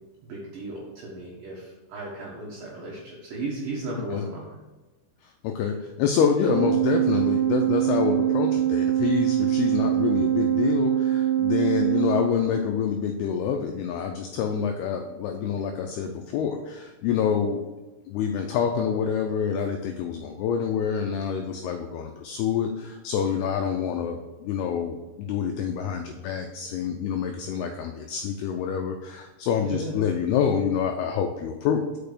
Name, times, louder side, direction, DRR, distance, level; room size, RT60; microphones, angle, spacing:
voice 1, 0.2-4.5 29.6-29.9, right 2 dB, 60° right, -4 dB, 2.6 m, -35 dB
voice 2, 5.4-17.7 18.1-31.8, left 7 dB, 90° left, 4 dB, 2.2 m, -27 dB
Organ, 6.4-12.9, right 12 dB, 90° right, 2.3 m, -24 dB
6.8 x 5.8 x 6.7 m, 1.1 s
omnidirectional pair, 5.3 m